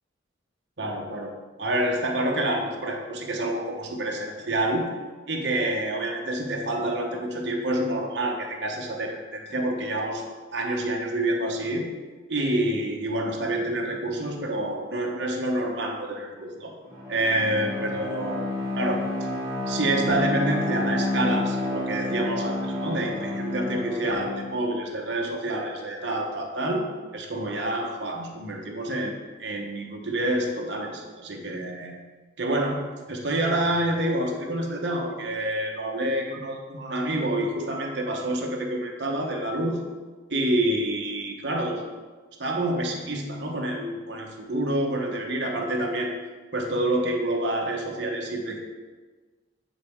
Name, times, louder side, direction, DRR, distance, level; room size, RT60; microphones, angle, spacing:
voice 1, 0.8-1.3 1.6-4.8 5.3-10.2 10.5-11.8 12.3-16.7 17.1-18.4 18.8-19.0 19.7-26.8 27.1-31.9 32.4-32.8 33.1-39.8 40.3-41.9 42.4-46.1 46.5-48.6, right 1 dB, 60° right, 1 dB, 1.0 m, -27 dB
Bowed string instrument, 16.8-24.6, left 1 dB, 15° right, 1.5 m, -29 dB
10.0 x 4.1 x 3.6 m, 1.3 s
head